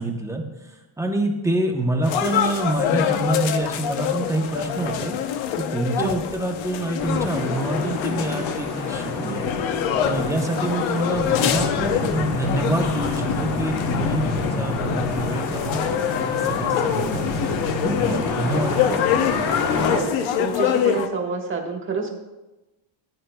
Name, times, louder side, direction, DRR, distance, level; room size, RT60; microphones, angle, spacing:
voice 1, 0.0-5.2 5.6-9.4 10.0-15.8 16.2-19.3, right 1 dB, 5° right, 2 dB, 0.8 m, -27 dB
sound 1, 2.0-21.1, left 9 dB, 70° left, 0.9 m, -26 dB
sound 2, 7.0-20.0, left 3 dB, 40° left, 1.1 m, -28 dB
voice 2, 19.9-22.1, right 4 dB, 25° right, 2 dB, 1.4 m, -28 dB
16.0 x 9.1 x 2.3 m, 1.1 s
cardioid pair, 165°, 49 cm